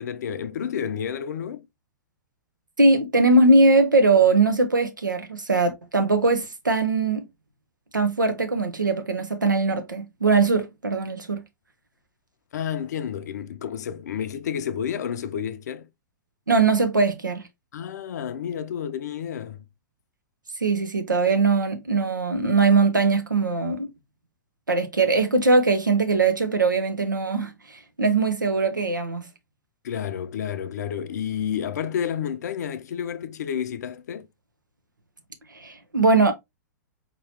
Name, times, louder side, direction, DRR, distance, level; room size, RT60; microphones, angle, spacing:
voice 1, 0.0-1.7 12.5-15.9 17.7-19.6 29.8-34.3, left 8 dB, 60° left, 0.6 m, -30 dB
voice 2, 2.8-7.2 7.9-11.4 16.5-17.4 20.6-23.9 24.7-27.5 28.0-29.3 35.6-36.3, right 3 dB, 85° right, 0.9 m, -21 dB
4.5 x 3.0 x 2.8 m
figure-of-eight pair, 110°, 10 cm